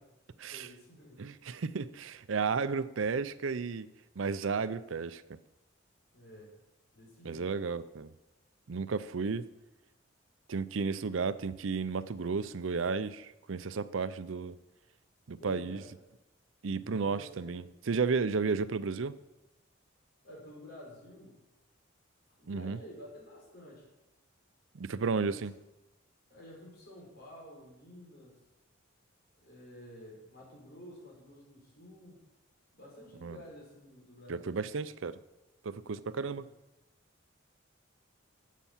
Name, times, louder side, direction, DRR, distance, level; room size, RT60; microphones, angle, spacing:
voice 1, 0.5-1.2 6.1-6.5 6.9-7.5 15.4-15.9 16.7-17.6 20.2-21.4 22.4-23.9 26.3-28.4 29.4-32.2 32.7-34.6 36.2-36.5, equal, 50° left, -3 dB, 5.0 m, -51 dB
voice 2, 1.2-3.9 4.2-5.2 7.2-8.1 8.7-9.4 10.5-14.6 15.3-15.8 16.6-19.2 22.5-22.8 24.7-25.5 33.2-33.4 34.3-35.2 35.6-36.5, right 5 dB, 80° right, 15 dB, 0.5 m, -33 dB
9.9 x 8.3 x 7.3 m, 0.98 s
head